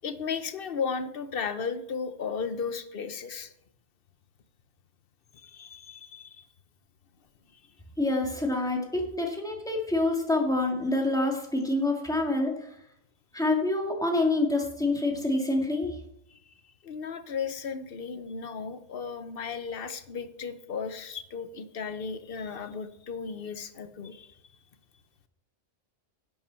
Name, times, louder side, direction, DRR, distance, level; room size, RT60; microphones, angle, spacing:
voice 1, 0.0-3.5 5.3-6.5 7.5-7.6 16.3-16.5 16.8-24.4, left 5 dB, 55° left, 11 dB, 0.9 m, -35 dB
voice 2, 8.0-12.8 13.3-16.0, left 2 dB, 5° left, 0 dB, 1.9 m, -27 dB
11.0 x 7.9 x 4.4 m, 0.78 s
omnidirectional pair, 1.2 m